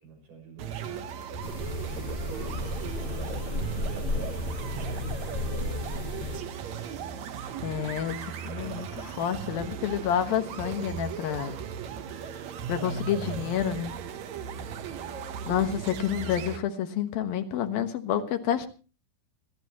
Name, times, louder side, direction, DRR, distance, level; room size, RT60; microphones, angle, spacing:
voice 1, 0.0-1.1 1.8-2.7 3.0-5.9, right 3 dB, 65° right, 1 dB, 8.0 m, -46 dB
sound 1, 0.6-16.6, right 7 dB, 80° right, 1.6 m, -37 dB
sound 2, 1.4-6.4, left 2 dB, 30° left, 2.4 m, -33 dB
voice 2, 7.6-11.6 12.7-13.9 15.5-18.7, left 9 dB, 65° left, 7 dB, 2.9 m, -29 dB
26.5 x 10.5 x 3.0 m, 0.35 s
omnidirectional pair, 4.8 m